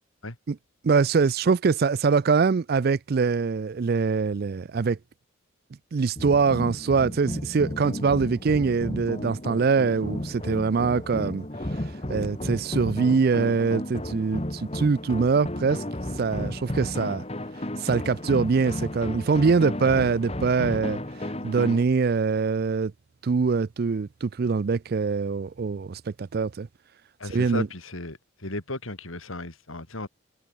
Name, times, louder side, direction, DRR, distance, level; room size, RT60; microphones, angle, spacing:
voice 1, 0.8-5.0 5.9-11.5 12.1-15.8 16.2-17.2 17.8-21.0 21.4-22.9 23.2-26.7 27.3-27.7, right 5 dB, 50° right, 0.4 m, -23 dB
sound 1, 6.2-21.8, left 1 dB, 30° left, 2.4 m, -33 dB
voice 2, 27.2-30.1, left 2 dB, 85° left, 4.9 m, -35 dB
head